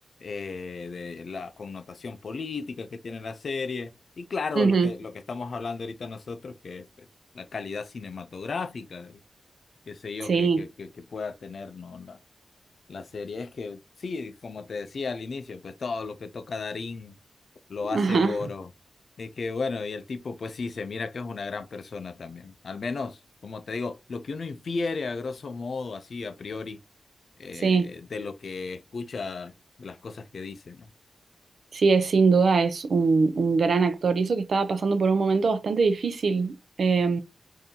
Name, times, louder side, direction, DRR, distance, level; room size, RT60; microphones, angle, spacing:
voice 1, 0.2-7.1 7.3-9.2 9.9-12.2 12.9-17.1 17.7-18.7 19.2-26.8 27.4-29.5 29.8-30.9, left 4 dB, 55° left, 0.4 m, -35 dB
voice 2, 4.6-4.9 10.3-10.6 17.9-18.5 27.6-27.9 31.7-37.2, right 4 dB, 60° right, 0.5 m, -22 dB
3.7 x 2.6 x 2.7 m
wide cardioid pair, 165°, 0 cm